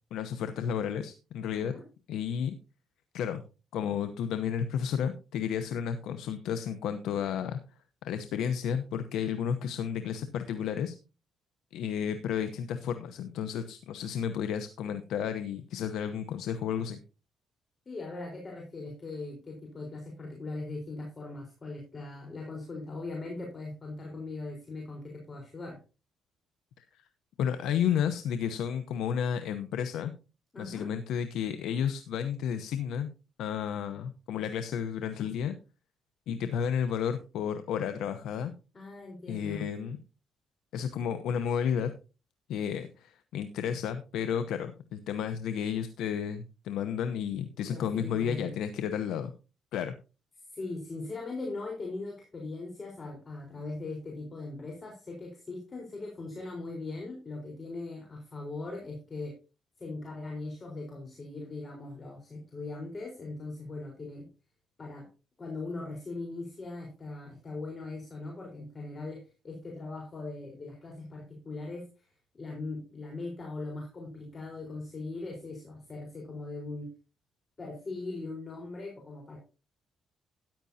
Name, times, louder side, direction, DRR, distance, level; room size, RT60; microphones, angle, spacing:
voice 1, 0.1-1.8 2.1-2.5 3.1-3.4 3.7-7.6 8.0-10.9 11.7-17.0 26.8-26.9 27.4-30.1 30.6-33.1 33.4-35.5 36.3-38.5 39.3-40.0 40.7-41.9 42.5-49.3 49.7-49.9, left 8 dB, 85° left, 9 dB, 0.8 m, -32 dB
voice 2, 17.9-25.8 30.5-30.9 38.7-39.7 47.6-48.5 50.5-59.3 59.8-64.3 64.8-65.1 65.4-76.9 77.6-79.4, left 2 dB, 35° left, 0 dB, 4.1 m, -40 dB
13.5 x 10.5 x 2.8 m, 0.32 s
cardioid pair, 90°, 0 cm